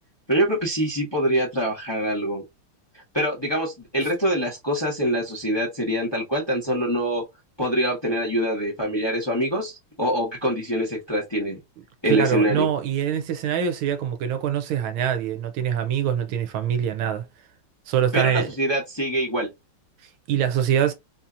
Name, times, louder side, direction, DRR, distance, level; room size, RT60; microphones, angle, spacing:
voice 1, 0.3-2.4 3.1-7.2 7.6-11.6 12.0-12.7 18.1-19.5, equal, 15° left, 1.1 m, -24 dB
voice 2, 12.0-17.2 17.9-18.5 20.3-20.9, right 9 dB, 80° right, 1.5 m, -24 dB
4.2 x 2.8 x 2.5 m
omnidirectional pair, 2.3 m